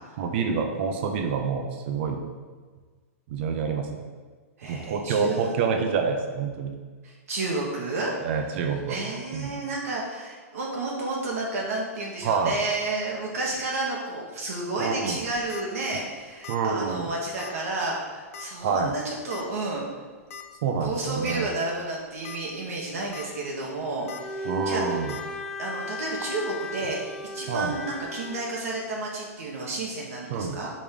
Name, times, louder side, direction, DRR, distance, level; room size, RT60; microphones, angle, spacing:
voice 1, 0.2-2.2 3.3-4.1 4.7-6.7 8.2-9.0 9.3-9.5 12.2-12.6 14.8-15.2 16.5-17.1 18.6-18.9 20.6-21.5 24.5-25.1 27.5-27.7 30.3-30.6, right 5 dB, 50° right, 4 dB, 0.7 m, -27 dB
voice 2, 4.6-5.6 7.0-8.1 8.9-19.8 20.8-25.0 25.6-30.7, right 2 dB, 75° right, -3 dB, 1.2 m, -31 dB
sound 1, 15.2-15.6 16.4-16.7 16.9-17.0 17.4-17.5 18.3-18.6 19.3-19.4 20.3-20.4 20.9-21.0 21.3-21.4 22.1-22.4 22.8-23.3 24.1-24.2 25.1-25.2, left 7 dB, 65° left, 0.7 m, -40 dB
Bowed string instrument, 24.0-28.5, left 1 dB, 5° left, 0.4 m, -35 dB
5.2 x 3.5 x 5.2 m, 1.5 s
hypercardioid pair, 145°, 8 cm